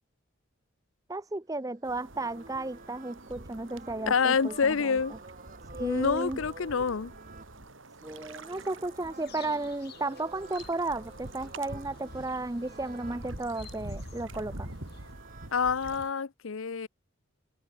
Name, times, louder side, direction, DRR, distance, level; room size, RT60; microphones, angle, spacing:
voice 1, 1.1-4.9 5.7-6.4 8.0-14.7, right 2 dB, 15° right, 0.6 m, -34 dB
sound 1, 1.6-13.3 14.4-15.5, right 4 dB, 40° right, 1.0 m, -51 dB
sound 2, 1.8-16.1, right 1 dB, 65° right, 3.6 m, -46 dB
voice 2, 4.1-5.1 5.8-7.1 15.5-16.9, left 5 dB, 70° left, 0.6 m, -27 dB
sound 3, 8.0-15.1, left 4 dB, 50° left, 3.1 m, -52 dB
open air
head